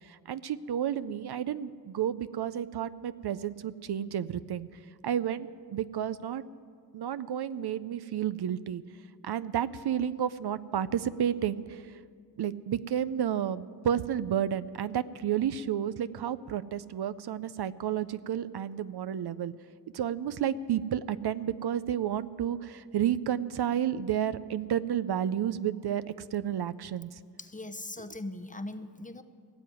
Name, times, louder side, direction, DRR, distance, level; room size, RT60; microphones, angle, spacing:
voice 1, 0.1-4.7 5.0-6.4 6.9-8.8 9.2-11.8 12.4-19.5 19.9-26.0 26.3-27.1, right 9 dB, 70° right, 14 dB, 0.5 m, -31 dB
voice 2, 27.4-29.2, left 2 dB, 20° left, 10 dB, 0.7 m, -40 dB
17.0 x 7.7 x 9.3 m, 2.1 s
cardioid pair, 60°, 42 cm